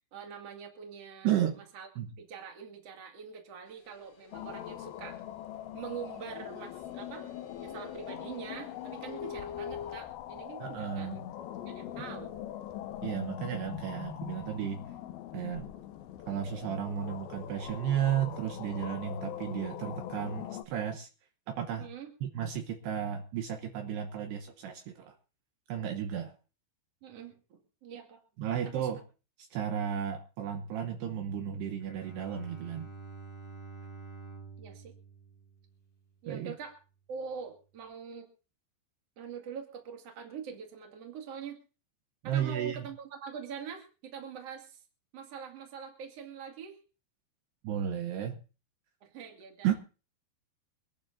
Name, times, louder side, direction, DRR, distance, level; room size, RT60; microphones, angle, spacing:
voice 1, 0.1-1.4 1.7-1.9 2.2-5.2 5.7-7.3 7.6-11.2 11.6-12.4 21.8-22.1 27.0-28.2 28.6-28.9 34.6-34.9 36.2-36.8 37.1-38.3 39.2-41.6 42.2-44.8 45.1-46.8 49.0-49.7, right 7 dB, 40° right, 3 dB, 2.7 m, -44 dB
voice 2, 1.2-1.6 2.0-2.1 10.6-11.3 13.0-14.8 15.3-15.7 16.3-21.1 21.5-21.9 22.2-25.2 25.7-26.3 28.4-29.0 29.4-32.9 36.3-36.5 42.2-42.8 47.6-48.4 49.6-49.7, right 9 dB, 70° right, 5 dB, 2.9 m, -33 dB
sound 1, 3.7-10.0, left 8 dB, 55° left, 3.1 m, -47 dB
sound 2, 4.3-20.6, left 12 dB, 80° left, 2.2 m, -42 dB
Bowed string instrument, 31.8-36.3, right 4 dB, 20° left, 1.1 m, -48 dB
25.0 x 12.0 x 2.7 m, 0.35 s
omnidirectional pair, 5.2 m